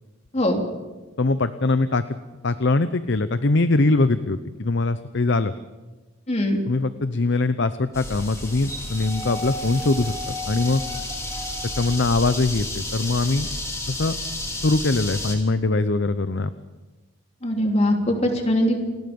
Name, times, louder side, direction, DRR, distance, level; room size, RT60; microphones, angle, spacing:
voice 1, 1.2-2.0 2.4-5.5 6.7-10.8 11.8-13.5 13.9-14.2 14.6-16.5, left 2 dB, 55° left, 12 dB, 0.7 m, -22 dB
voice 2, 6.3-6.6 17.4-18.8, left 1 dB, 30° left, 2 dB, 3.3 m, -21 dB
sound 1, 7.9-15.4, left 1 dB, 15° left, 3.8 m, -31 dB
29.5 x 20.5 x 5.4 m, 1.2 s
head